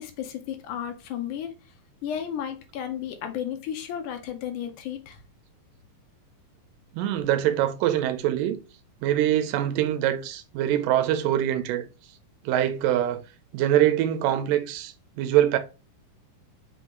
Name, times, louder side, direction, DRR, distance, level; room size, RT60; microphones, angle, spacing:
voice 1, 0.0-1.5 2.0-5.2, left 9 dB, 75° left, 2.0 m, -33 dB
voice 2, 6.9-8.6 9.0-11.9 12.5-13.2 13.5-15.6, right 12 dB, 80° right, 2.2 m, -24 dB
5.4 x 2.7 x 3.6 m
omnidirectional pair, 3.9 m